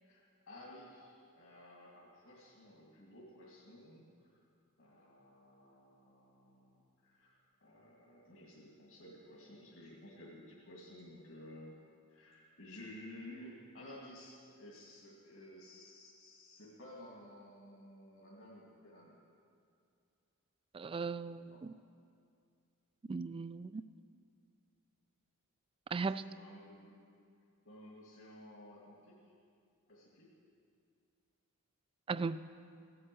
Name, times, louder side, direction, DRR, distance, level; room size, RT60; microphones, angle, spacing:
voice 1, 0.0-4.1 4.8-11.7 12.1-19.2 21.5-21.6 26.0-27.0 27.6-29.3 29.9-30.3, left 1 dB, 65° left, -4 dB, 2.5 m, -54 dB
voice 2, 20.7-21.7 23.1-23.8 25.9-26.2 32.1-32.5, right 4 dB, 25° right, 15 dB, 0.3 m, -37 dB
16.0 x 8.8 x 7.8 m, 2.4 s
head